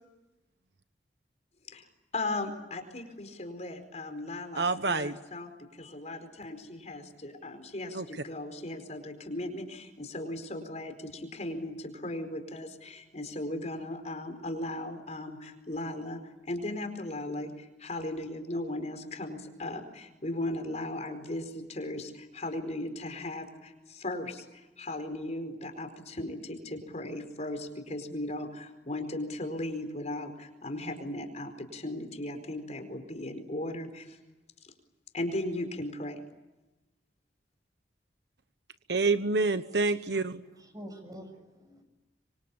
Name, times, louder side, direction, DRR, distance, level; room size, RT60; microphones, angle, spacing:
voice 1, 2.1-34.2 34.6-34.7 35.1-36.2, left 1 dB, 40° left, 6 dB, 4.7 m, -37 dB
voice 2, 4.6-5.2 7.9-8.0 38.9-40.4, right 3 dB, 70° right, 11 dB, 1.2 m, -27 dB
voice 3, 40.6-41.8, equal, 20° right, 6 dB, 6.5 m, -46 dB
26.0 x 25.0 x 8.9 m, 1.1 s
head